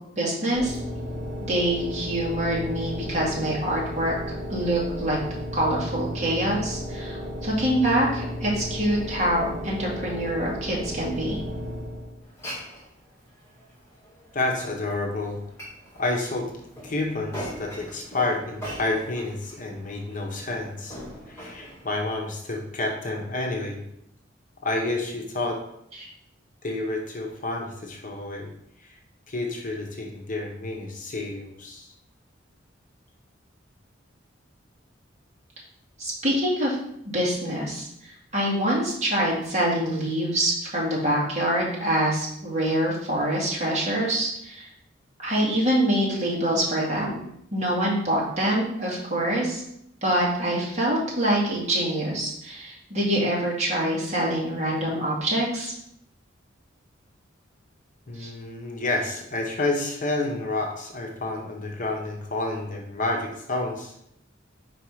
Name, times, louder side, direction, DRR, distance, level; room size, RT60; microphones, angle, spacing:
voice 1, 0.2-0.8 1.5-4.1 4.5-5.2 5.5-11.4 26.0-26.1 36.0-36.8 37.1-44.7 45.2-47.2 47.5-49.6 50.0-55.7 58.2-58.3, right 1 dB, 35° right, -5 dB, 2.0 m, -25 dB
sound 1, 0.6-12.3, equal, 70° right, 1.8 m, -34 dB
Glass, 12.2-22.1, equal, 15° left, 2.6 m, -42 dB
voice 2, 14.3-15.4 16.0-16.5 16.8-21.0 21.3-23.8 24.6-25.6 26.6-28.5 28.8-29.0 29.3-31.9 58.1-63.9, left 2 dB, 45° left, 1 dB, 1.0 m, -29 dB
4.9 x 4.6 x 4.8 m, 0.74 s
head